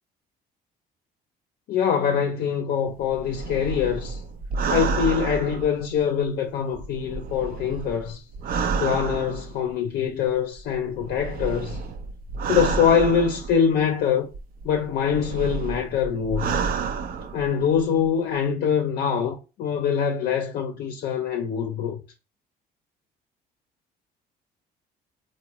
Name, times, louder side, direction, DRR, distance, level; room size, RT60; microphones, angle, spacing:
voice 1, 1.7-4.2 4.7-8.2 8.8-11.8 12.5-14.3 14.6-16.6 17.3-22.0, left 7 dB, 65° left, 0.5 m, -24 dB
sound 1, 3.0-6.3 6.7-9.7 10.6-13.8 14.3-17.8 18.0-18.1, right 5 dB, 60° right, 0.5 m, -30 dB
3.8 x 2.1 x 2.9 m
cardioid pair, 110°, 17 cm